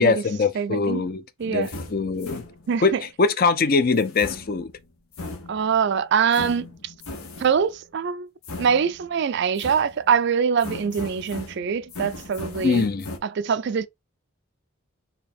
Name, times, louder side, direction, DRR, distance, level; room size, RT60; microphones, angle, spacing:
voice 1, 0.0-2.4 2.8-4.7 12.6-13.1, left 4 dB, 45° left, 0.5 m, -22 dB
voice 2, 0.6-1.0 1.4-1.7 2.7-3.0 5.5-6.9 7.4-8.3 8.6-12.9 13.2-13.9, right 6 dB, 55° right, 0.4 m, -24 dB
sound 1, 1.4-2.9 4.0-5.9 6.3-7.7 8.4-9.2 9.6-10.2 10.6-13.2, left 2 dB, 90° left, 1.3 m, -38 dB
4.5 x 2.8 x 4.0 m
head